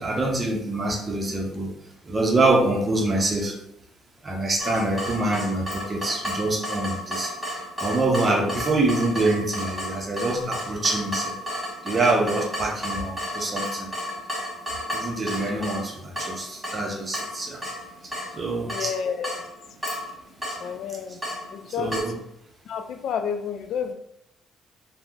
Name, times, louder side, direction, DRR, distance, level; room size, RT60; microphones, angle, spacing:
voice 1, 0.0-1.7 2.0-3.6 4.2-11.4 11.8-13.9 14.9-17.6 18.3-18.9 21.8-22.1, right 2 dB, 25° right, 1 dB, 0.6 m, -25 dB
Water tap faucet / Drip, 4.6-22.0, left 1 dB, 10° right, 1.5 m, -33 dB
voice 2, 18.7-19.5 20.6-21.2 21.5-22.0 22.6-23.9, left 7 dB, 65° left, 7 dB, 0.4 m, -30 dB
2.6 x 2.1 x 3.6 m, 0.77 s
cardioid pair, 125°, 0 cm